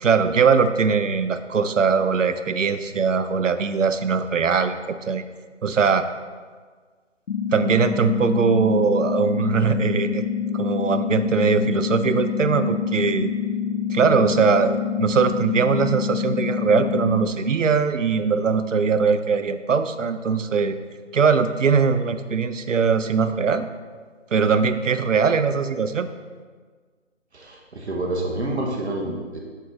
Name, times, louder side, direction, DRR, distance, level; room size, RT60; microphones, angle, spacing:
voice 1, 0.0-4.8 5.1-5.2 5.6-6.0 7.5-10.2 10.5-13.3 13.9-20.8 21.1-23.7 24.3-26.1, right 5 dB, 85° right, 11 dB, 0.6 m, -21 dB
sound 1, 7.3-17.3, left 7 dB, 70° left, 0.5 m, -26 dB
voice 2, 27.3-29.4, right 1 dB, 60° right, -1 dB, 1.1 m, -28 dB
8.1 x 3.6 x 3.9 m, 1.5 s
figure-of-eight pair, 150°, 37 cm